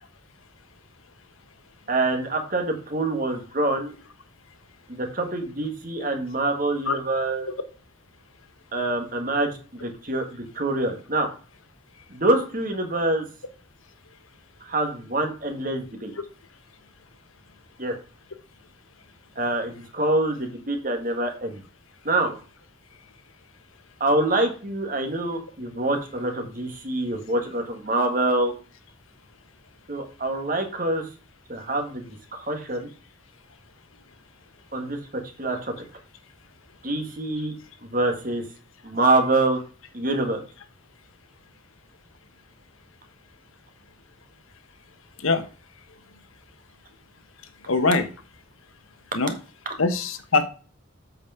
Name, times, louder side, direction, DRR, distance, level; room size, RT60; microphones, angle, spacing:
voice 1, 1.9-3.9 4.9-7.5 8.7-11.3 12.1-13.2 14.6-16.1 17.8-17.9 19.4-21.6 22.0-22.3 24.0-28.5 29.9-31.1 31.5-32.9 34.7-35.0 35.4-35.7 36.8-37.5 37.8-38.4 38.8-39.6 39.9-40.4, right 2 dB, 40° right, 5 dB, 1.8 m, -25 dB
voice 2, 47.7-48.1 49.1-49.3 49.8-50.5, left 3 dB, 85° left, 10 dB, 1.1 m, -22 dB
8.1 x 5.1 x 5.6 m, 0.37 s
head